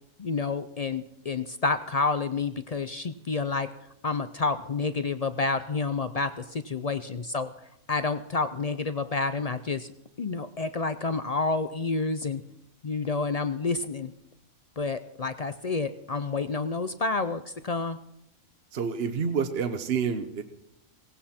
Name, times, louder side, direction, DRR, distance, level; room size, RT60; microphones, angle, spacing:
voice 1, 0.2-3.7 4.0-7.5 7.9-9.9 10.2-12.4 12.8-14.1 14.8-18.0, left 4 dB, 50° left, 11 dB, 0.4 m, -29 dB
voice 2, 18.7-20.4, right 6 dB, 50° right, 8 dB, 1.1 m, -28 dB
18.0 x 16.5 x 4.3 m, 0.81 s
omnidirectional pair, 1.5 m